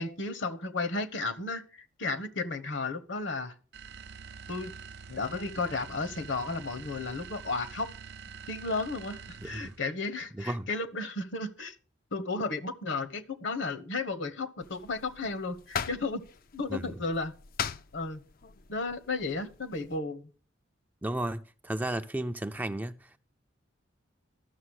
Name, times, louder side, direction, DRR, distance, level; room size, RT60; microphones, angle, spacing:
voice 1, 0.0-3.5 4.5-4.7 5.1-7.9 8.5-11.7 12.1-16.2 16.5-17.3 17.9-18.2 18.7-20.3, left 3 dB, 65° left, 1.1 m, -33 dB
sound 1, 3.7-9.9, right 5 dB, 55° right, 0.6 m, -46 dB
voice 2, 9.4-9.7 10.3-10.7 16.7-17.0 21.0-23.2, right 1 dB, 10° right, 0.4 m, -34 dB
sound 2, 14.6-20.0, left 7 dB, 50° left, 0.5 m, -40 dB
12.5 x 6.7 x 6.3 m
head